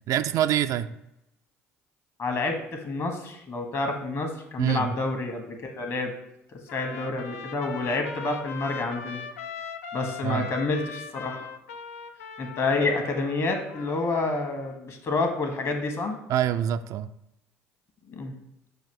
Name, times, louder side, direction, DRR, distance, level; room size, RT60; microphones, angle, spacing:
voice 1, 0.1-0.9 4.6-4.9 10.2-10.5 16.3-17.1, right 11 dB, 50° right, 10 dB, 0.3 m, -25 dB
voice 2, 2.2-6.1 6.5-9.2 9.9-11.5 12.4-16.2 18.1-18.4, left 3 dB, 40° left, 4 dB, 1.3 m, -29 dB
Trumpet, 6.7-14.8, left 6 dB, 75° left, 0.4 m, -40 dB
6.9 x 2.6 x 5.3 m, 0.84 s
figure-of-eight pair, 55°, 8 cm